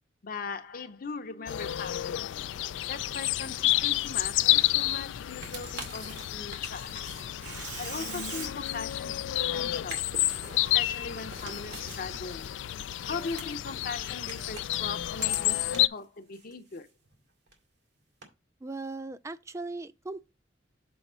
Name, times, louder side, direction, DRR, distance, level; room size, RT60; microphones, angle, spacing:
voice 1, 0.2-2.2 2.9-7.1 7.8-10.1 10.7-12.5 13.1-16.9, left 4 dB, 50° left, 0.7 m, -39 dB
sound 1, 1.5-15.9, left 15 dB, 90° left, 0.3 m, -30 dB
Tearing, 2.9-12.5, right 3 dB, 85° right, 2.2 m, -46 dB
sound 2, 3.8-9.3 9.8-16.0 16.3-17.2 17.5-17.6 18.2-18.3, right 3 dB, 65° right, 2.2 m, -48 dB
voice 2, 18.6-20.2, right 3 dB, 15° right, 0.3 m, -38 dB
7.0 x 4.0 x 5.4 m
head